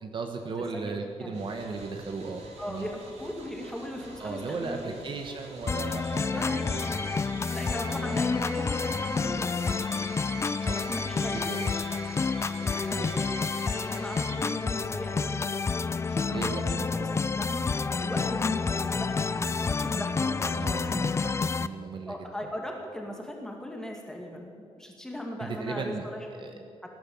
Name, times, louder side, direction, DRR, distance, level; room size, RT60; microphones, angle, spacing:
voice 1, 0.0-2.4 2.7-2.9 4.2-6.8 10.6-10.8 11.5-11.7 16.3-17.1 20.5-22.1 25.4-26.5, right 4 dB, 45° right, 4 dB, 1.3 m, -36 dB
sound 1, 1.3-14.5, right 5 dB, 80° right, 2.8 m, -45 dB
voice 2, 2.6-5.0 6.2-7.0 7.4-9.9 10.7-11.8 12.6-13.3 13.7-15.6 15.9-21.1 22.1-26.3 26.5-26.9, left 1 dB, 5° left, 1 dB, 2.3 m, -39 dB
sound 2, 5.7-21.7, left 4 dB, 25° left, 0.4 m, -29 dB
18.5 x 10.0 x 7.1 m, 2.4 s
wide cardioid pair, 140°, 11 cm